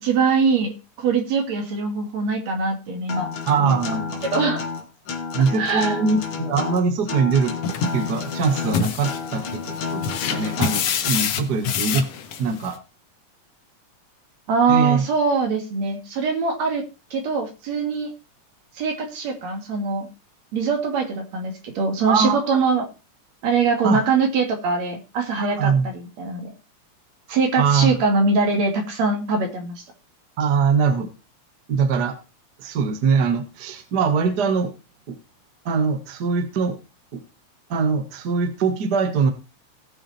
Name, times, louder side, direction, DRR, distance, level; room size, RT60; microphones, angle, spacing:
voice 1, 0.0-3.3 3.6-3.7 4.3-4.6 5.6-6.0 14.5-16.8 17.1-18.1 18.8-20.1 20.5-22.9 23.4-26.5 27.3-29.8, right 4 dB, 60° right, 4 dB, 3.3 m, -22 dB
Acoustic guitar, 3.1-11.1, left 6 dB, 50° left, 2.0 m, -30 dB
voice 2, 3.5-4.2 5.3-7.5 7.9-12.1 12.4-12.8 14.7-15.0 22.0-22.6 23.8-24.0 25.4-25.9 27.6-28.0 30.4-31.1 31.7-32.2 32.6-34.7 35.1-35.2 35.6-36.8 37.1-37.2 37.7-39.3, right 5 dB, 45° right, 8 dB, 1.4 m, -22 dB
sound 1, 7.6-12.7, left 6 dB, 65° left, 2.1 m, -27 dB
18.0 x 6.1 x 4.2 m, 0.30 s
omnidirectional pair, 3.5 m